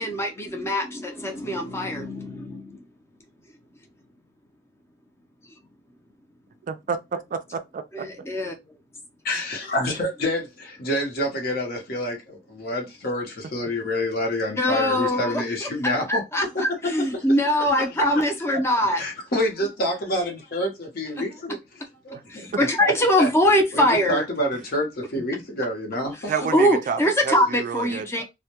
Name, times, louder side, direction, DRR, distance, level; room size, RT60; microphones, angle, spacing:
voice 1, 0.0-2.8 5.4-5.5 7.9-8.8 14.6-19.0 21.2-21.3 21.5-21.6 22.3-24.2 26.2-28.2, left 1 dB, 15° left, 0.5 m, -23 dB
voice 2, 6.7-8.1 26.3-27.0 27.3-28.1, right 6 dB, 45° right, 0.3 m, -29 dB
voice 3, 9.2-16.2 16.5-17.2 19.0-21.6 22.0-22.5 23.2-23.3 23.7-26.3 28.1-28.2, left 1 dB, 55° left, 0.8 m, -27 dB
2.2 x 2.1 x 2.8 m
head